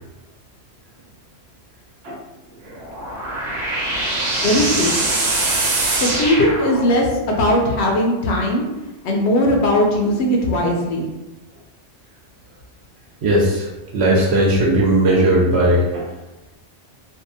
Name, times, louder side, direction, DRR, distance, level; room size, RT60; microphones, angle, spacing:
sound 1, 2.7-7.2, right 2 dB, 90° right, 1.1 m, -23 dB
voice 1, 4.4-5.0 6.0-8.6 9.0-11.1, left 1 dB, 70° left, 0 dB, 0.8 m, -18 dB
voice 2, 13.2-13.7 13.9-16.0, right 1 dB, 65° right, -3 dB, 0.9 m, -17 dB
2.6 x 2.3 x 2.6 m, 1.1 s
omnidirectional pair, 1.3 m